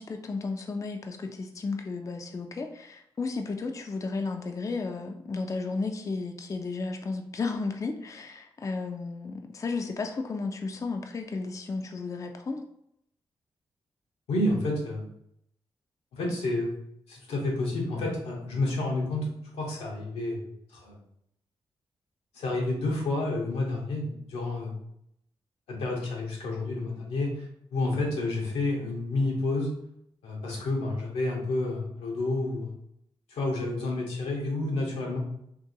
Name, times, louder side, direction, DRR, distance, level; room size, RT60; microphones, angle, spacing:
voice 1, 0.0-12.6, left 3 dB, 30° left, 4 dB, 0.4 m, -33 dB
voice 2, 14.3-15.1 16.1-16.7 17.1-19.2 19.5-20.4 20.7-21.0 22.3-24.8 25.7-29.7 30.2-32.7 33.3-35.2, left 2 dB, 85° left, -1 dB, 0.8 m, -30 dB
2.8 x 2.6 x 2.6 m, 0.74 s
supercardioid pair, 45°, 10 cm